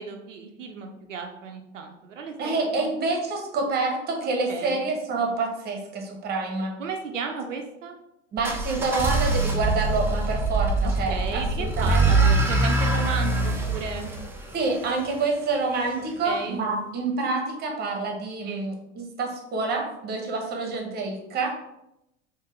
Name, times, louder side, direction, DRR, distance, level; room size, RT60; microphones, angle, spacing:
voice 1, 0.0-2.9 4.5-4.8 6.8-8.0 10.8-14.1 16.2-16.6 18.5-18.7, right 5 dB, 80° right, 3 dB, 0.5 m, -34 dB
voice 2, 2.4-6.7 8.3-12.3 14.5-21.5, right 3 dB, 25° right, 2 dB, 0.8 m, -27 dB
sound 1, 8.4-15.3, right 2 dB, 5° right, 0.3 m, -24 dB
3.6 x 2.7 x 2.9 m, 0.86 s
figure-of-eight pair, 75°, 37 cm